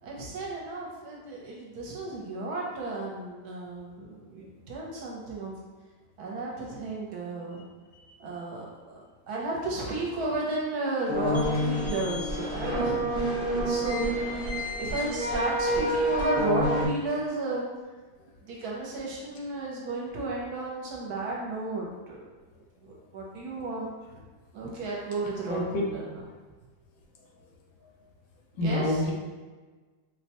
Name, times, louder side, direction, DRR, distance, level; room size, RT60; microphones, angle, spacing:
voice 1, 0.0-5.5 6.2-7.6 8.2-9.0 9.3-17.6 18.4-22.2 22.8-23.9 24.5-26.2 28.6-29.0, right 2 dB, 70° right, -3 dB, 1.1 m, -33 dB
sound 1, 11.1-16.9, equal, 5° right, 0.6 m, -28 dB
voice 2, 25.5-25.8 28.6-29.1, left 1 dB, 75° left, -1 dB, 1.2 m, -27 dB
4.2 x 2.2 x 2.8 m, 1.3 s
omnidirectional pair, 1.8 m